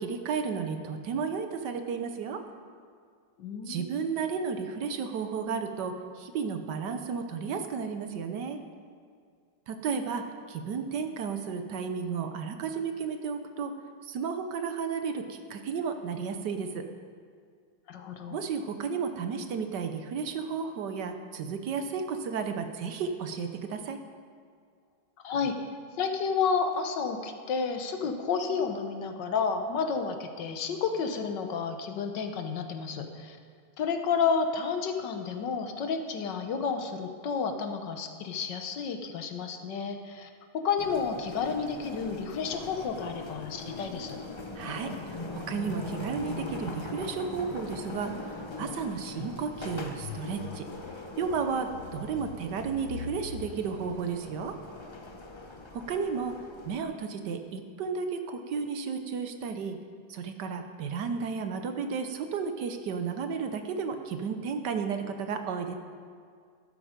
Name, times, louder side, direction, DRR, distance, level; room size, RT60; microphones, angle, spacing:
voice 1, 0.0-2.4 3.7-8.6 9.7-13.7 14.0-16.9 18.3-24.0 44.5-50.7 51.2-54.6 55.7-56.3 56.6-59.8 60.1-65.8, right 5 dB, 70° right, 7 dB, 1.4 m, -33 dB
voice 2, 3.4-3.9 17.9-18.4 25.2-25.7 26.0-33.4 33.8-44.2, left 5 dB, 70° left, 6 dB, 1.6 m, -31 dB
sound 1, 40.8-56.8, left 2 dB, 35° left, 0.4 m, -41 dB
sound 2, 47.1-54.9, left 8 dB, 85° left, 1.5 m, -46 dB
12.5 x 12.5 x 5.1 m, 2.1 s
omnidirectional pair, 2.0 m